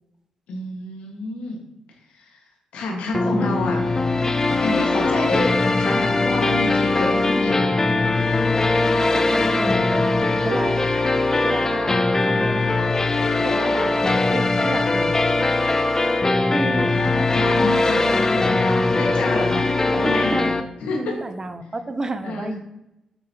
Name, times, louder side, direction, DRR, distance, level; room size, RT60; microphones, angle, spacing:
voice 1, 0.5-1.6 2.2-2.4 2.7-3.8 4.6-7.6 17.3-20.3 20.8-21.1 22.2-22.5, left 3 dB, 85° left, 0 dB, 1.5 m, -28 dB
sound 1, 3.1-20.6, left 2 dB, 25° left, 0.5 m, -20 dB
voice 2, 3.3-3.7 4.9-5.1 9.1-10.0 10.4-11.0 11.4-13.0 13.4-15.2 16.5-17.3 19.9-20.5 21.0-22.6, right 2 dB, 30° right, 10 dB, 0.6 m, -31 dB
7.0 x 5.3 x 2.9 m, 0.89 s
cardioid pair, 70°, 2 cm